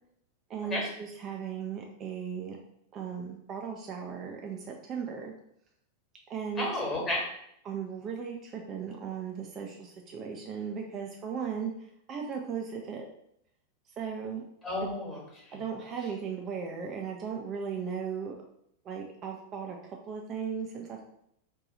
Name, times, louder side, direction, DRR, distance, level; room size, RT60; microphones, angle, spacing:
voice 1, 0.5-2.6 2.9-5.3 6.3-6.7 7.6-13.1 14.0-14.4 15.5-18.3 18.8-21.0, right 6 dB, 30° right, 1 dB, 0.4 m, -37 dB
voice 2, 6.6-7.2 14.6-15.6, left 1 dB, 20° left, -3 dB, 1.3 m, -32 dB
2.7 x 2.3 x 3.8 m, 0.74 s
figure-of-eight pair, 90°, 0 cm